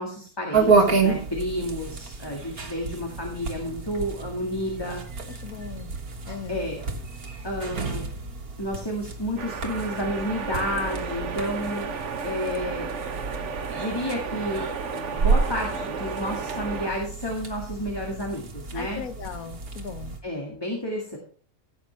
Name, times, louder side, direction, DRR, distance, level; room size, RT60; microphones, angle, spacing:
voice 1, 0.0-5.0 6.5-6.8 7.4-8.1 8.6-11.9 12.2-12.9 13.7-14.7 15.1-19.0 20.2-21.2, equal, 15° left, 2.0 m, -31 dB
sound 1, 0.5-20.2, right 4 dB, 85° right, 2.1 m, -30 dB
voice 2, 5.4-5.9 6.3-6.6 18.7-20.2, left 7 dB, 75° left, 1.4 m, -38 dB
sound 2, 9.4-16.9, right 5 dB, 55° right, 1.2 m, -33 dB
16.5 x 8.1 x 3.4 m
omnidirectional pair, 1.5 m